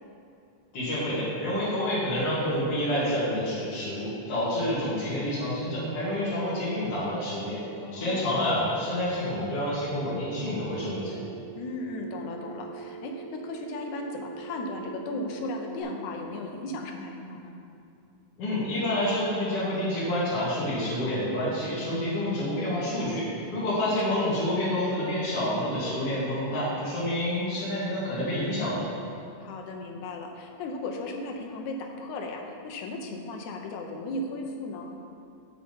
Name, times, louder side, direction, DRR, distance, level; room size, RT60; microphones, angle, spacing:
voice 1, 0.7-7.6 7.9-11.2 18.4-28.8, left 1 dB, 50° left, -11 dB, 3.1 m, -28 dB
voice 2, 7.8-8.7 11.6-17.5 23.6-24.2 29.4-34.9, left 2 dB, 75° left, 2 dB, 2.3 m, -36 dB
Telephone, 10.8-15.8, right 8 dB, 80° right, 2.8 m, -43 dB
7.5 x 7.4 x 5.4 m, 2.5 s
omnidirectional pair, 3.5 m